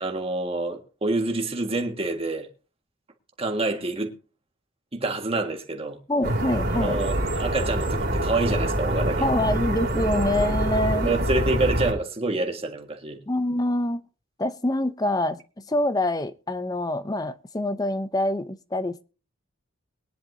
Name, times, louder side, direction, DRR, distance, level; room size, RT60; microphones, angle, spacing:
voice 1, 0.0-2.5 3.4-4.1 4.9-6.0 6.7-9.4 10.0-10.1 11.0-13.2, right 2 dB, 30° right, 1.7 m, -27 dB
voice 2, 6.1-7.0 9.2-11.1 13.3-14.0 14.4-15.4 15.7-19.0, left 1 dB, 20° left, 0.6 m, -25 dB
sound 1, 6.2-11.9, right 1 dB, 50° right, 2.7 m, -25 dB
21.5 x 10.5 x 2.7 m
head